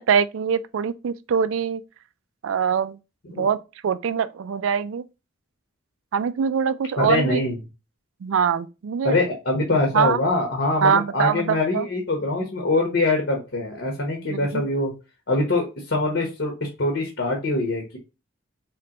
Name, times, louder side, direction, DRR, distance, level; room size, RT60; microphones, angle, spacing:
voice 1, 0.0-1.8 2.4-3.0 3.4-3.6 3.8-5.0 6.1-7.4 8.2-9.2 9.9-10.2 10.8-11.9 14.3-14.6, right 7 dB, 70° right, 0.3 m, -23 dB
voice 2, 7.0-7.6 9.0-14.9 15.3-18.0, left 2 dB, 60° left, 1.1 m, -23 dB
3.8 x 3.3 x 2.9 m
head